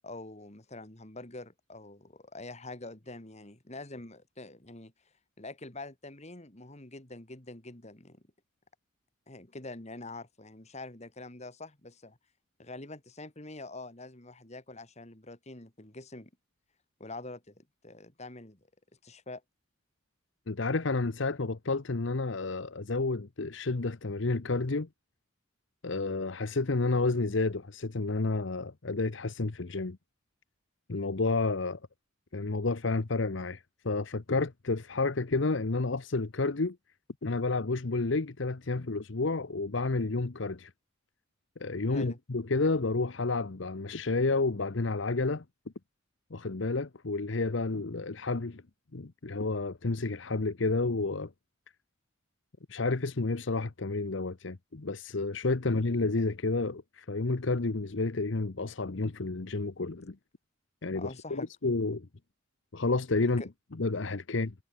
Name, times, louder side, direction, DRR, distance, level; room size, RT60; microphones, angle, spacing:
voice 1, 0.0-4.9 5.4-8.2 9.3-12.2 12.6-16.3 17.0-18.7 19.0-19.4 41.9-42.2 60.9-61.5 63.2-63.5, left 2 dB, 35° left, 2.6 m, -45 dB
voice 2, 20.5-24.9 25.8-30.0 30.9-31.8 32.3-36.8 37.2-40.7 41.6-45.4 46.3-48.6 48.9-51.3 52.7-60.2 60.8-62.1 62.7-63.4 63.8-64.5, left 3 dB, 65° left, 0.9 m, -30 dB
head